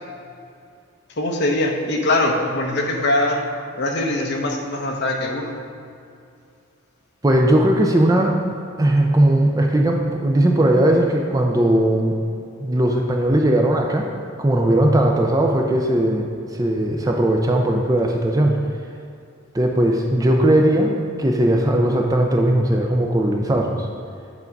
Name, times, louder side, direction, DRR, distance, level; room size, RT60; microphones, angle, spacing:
voice 1, 1.2-3.4 3.8-5.5, left 1 dB, 55° left, 1 dB, 0.8 m, -22 dB
voice 2, 7.2-8.4 8.8-12.1 12.6-14.1 14.4-18.5 19.5-23.9, right 1 dB, 15° right, 1 dB, 0.4 m, -18 dB
8.3 x 3.5 x 5.2 m, 2.5 s
head